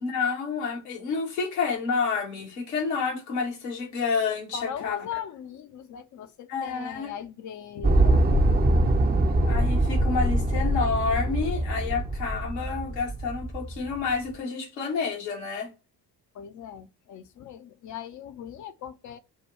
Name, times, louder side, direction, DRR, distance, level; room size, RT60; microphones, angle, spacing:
voice 1, 0.0-5.0 6.5-7.1 9.4-15.7, left 5 dB, 75° left, 1.3 m, -29 dB
voice 2, 4.5-8.2 16.3-19.2, left 9 dB, 40° left, 0.6 m, -39 dB
sound 1, 7.8-14.1, right 1 dB, 20° right, 0.6 m, -23 dB
6.3 x 2.2 x 3.1 m
figure-of-eight pair, 45°, 49 cm